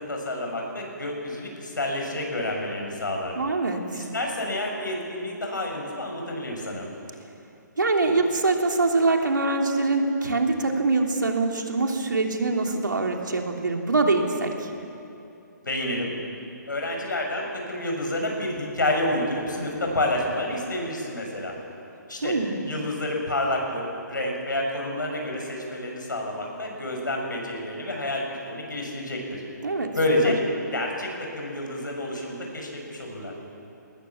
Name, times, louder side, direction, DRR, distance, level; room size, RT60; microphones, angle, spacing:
voice 1, 0.0-3.3 3.9-6.9 15.6-16.2 16.7-21.5 22.1-22.4 22.6-29.4 29.9-30.4 30.7-33.3, left 1 dB, 80° left, 1 dB, 6.7 m, -29 dB
voice 2, 3.3-4.1 7.8-14.7 22.2-22.6 29.6-29.9 30.2-30.3, right 3 dB, 80° right, 2 dB, 3.2 m, -24 dB
20.0 x 20.0 x 7.3 m, 2.8 s
figure-of-eight pair, 140°, 10 cm